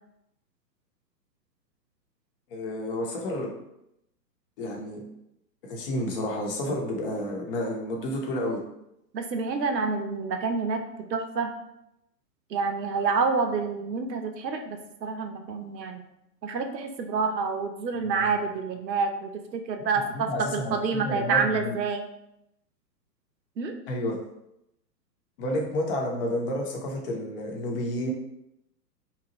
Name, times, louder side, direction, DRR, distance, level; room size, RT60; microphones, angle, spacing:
voice 1, 2.5-3.5 4.6-5.0 5.6-8.6 20.0-21.7 23.9-24.2 25.4-28.1, left 1 dB, 35° left, 0 dB, 0.7 m, -30 dB
voice 2, 9.1-11.5 12.5-16.0 16.4-22.0 23.6-23.7, right 4 dB, 80° right, 5 dB, 0.7 m, -28 dB
2.9 x 2.4 x 3.8 m, 0.83 s
hypercardioid pair, 120°, 50 cm